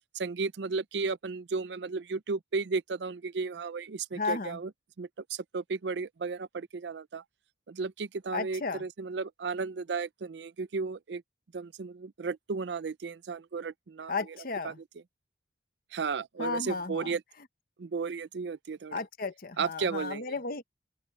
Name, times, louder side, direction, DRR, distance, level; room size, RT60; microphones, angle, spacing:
voice 1, 0.1-4.7 5.0-7.2 7.7-11.2 11.5-14.1 14.6-14.7 15.9-17.2 17.8-19.0 19.6-20.4, right 4 dB, 70° right, 0.5 m, -34 dB
voice 2, 4.1-4.6 8.3-8.8 14.1-14.8 16.4-17.1 18.9-20.7, left 4 dB, 55° left, 1.2 m, -34 dB
open air
head